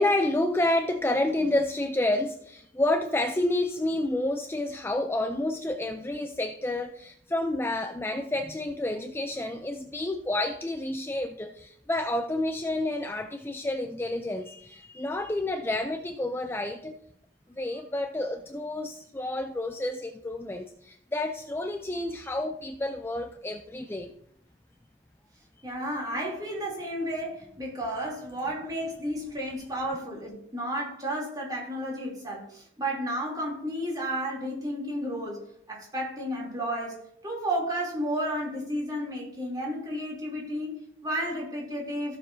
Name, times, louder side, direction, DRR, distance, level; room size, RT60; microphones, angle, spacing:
voice 1, 0.0-17.0 17.5-24.1, left 1 dB, 10° left, 0.4 m, -29 dB
voice 2, 25.6-35.4 35.7-42.2, equal, 20° right, 2.9 m, -32 dB
15.5 x 6.8 x 2.7 m
head